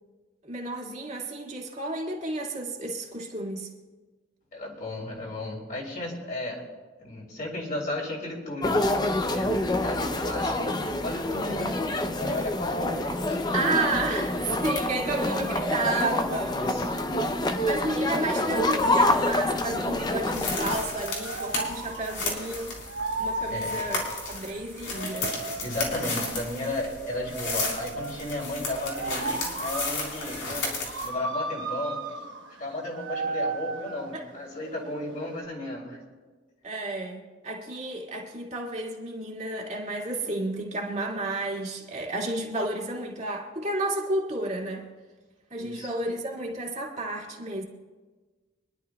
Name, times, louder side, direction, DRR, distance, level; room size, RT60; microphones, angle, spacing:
voice 1, 0.4-3.7 12.8-12.9 13.5-16.5 17.6-22.8 23.2-24.0 24.3-25.3 34.1-34.2 36.6-44.9 45.5-47.6, right 2 dB, 40° right, 1.9 m, -31 dB
voice 2, 4.5-6.6 7.0-8.8 9.2-10.7 11.0-11.9 12.2-14.1 16.4-16.8 23.5-23.8 25.6-30.7 31.0-32.0 32.6-36.0 45.6-45.9, left 1 dB, 45° left, 3.1 m, -34 dB
sound 1, 8.6-20.8, left 1 dB, 20° left, 0.6 m, -27 dB
sound 2, 17.6-35.4, right 3 dB, 80° right, 1.1 m, -36 dB
sound 3, 20.3-31.1, left 3 dB, 80° left, 3.9 m, -34 dB
26.0 x 11.0 x 2.3 m
head